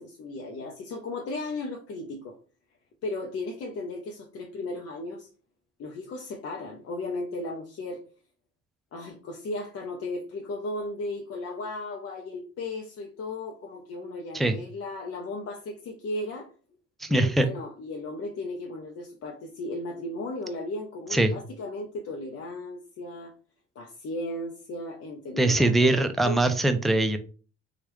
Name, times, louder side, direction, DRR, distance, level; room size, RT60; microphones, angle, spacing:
voice 1, 0.0-2.4 3.0-5.3 5.8-8.0 8.9-16.5 17.1-23.3 23.8-26.4, left 2 dB, 50° left, 1 dB, 0.7 m, -35 dB
voice 2, 17.0-17.5 21.1-21.4 25.4-27.2, right 2 dB, ahead, 8 dB, 0.4 m, -22 dB
3.0 x 2.4 x 3.0 m, 0.38 s
hypercardioid pair, 55°, 31 cm